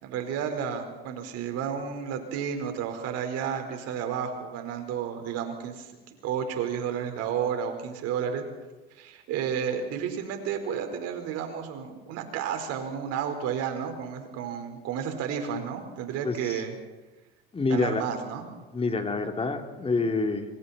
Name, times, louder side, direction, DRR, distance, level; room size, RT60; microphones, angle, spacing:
voice 1, 0.0-6.0 6.2-8.4 8.9-16.7 17.7-18.4, right 8 dB, 60° right, 6 dB, 4.3 m, -32 dB
voice 2, 16.2-16.6 17.5-18.0 18.7-20.4, left 3 dB, 20° left, 5 dB, 3.1 m, -27 dB
26.0 x 25.0 x 4.2 m, 1.2 s
hypercardioid pair, 80°, 29 cm